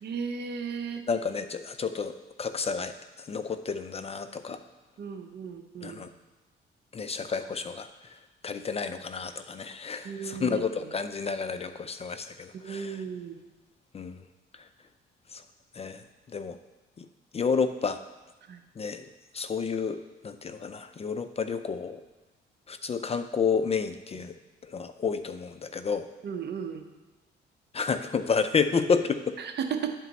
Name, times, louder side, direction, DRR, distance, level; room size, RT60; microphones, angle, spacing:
voice 1, 0.0-1.0 5.0-6.1 10.0-10.9 12.6-13.4 18.5-18.6 26.2-26.8 29.4-29.9, right 6 dB, 60° right, 6 dB, 0.8 m, -35 dB
voice 2, 1.1-4.6 5.8-6.1 6.9-7.9 8.4-13.0 13.9-14.2 14.5-14.6 15.3-15.4 15.7-16.0 16.3-16.6 17.0-17.1 17.3-18.0 18.8-19.1 19.3-20.0 20.2-22.0 22.7-24.3 24.6-26.1 27.7-29.4, left 5 dB, 30° left, 10 dB, 0.4 m, -30 dB
10.5 x 4.2 x 4.0 m, 1.2 s
cardioid pair, 90°, 20 cm